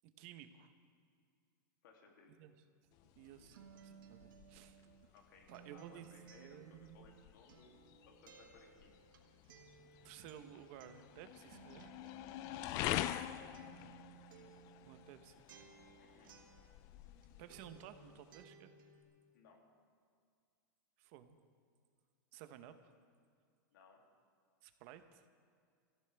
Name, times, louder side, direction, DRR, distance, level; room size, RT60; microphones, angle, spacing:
voice 1, 0.0-0.7 2.3-2.5 3.2-4.8 5.5-7.1 10.0-12.0 14.8-15.4 17.4-18.7 21.0-21.4 22.3-22.9 24.6-25.2, right 10 dB, 40° right, 10 dB, 0.9 m, -55 dB
voice 2, 1.8-2.3 3.3-3.5 5.1-6.6 6.9-7.7 8.0-9.0 12.5-12.8 16.0-16.3 19.3-19.6 23.7-24.0, left 5 dB, 65° left, 1 dB, 2.7 m, -63 dB
sound 1, 2.9-18.4, left 13 dB, 30° left, 0.4 m, -46 dB
Acoustic guitar, 3.0-17.2 17.5-19.0, right 7 dB, 90° right, 1.7 m, -61 dB
23.5 x 14.5 x 3.4 m, 2.2 s
supercardioid pair, 165°, 11 cm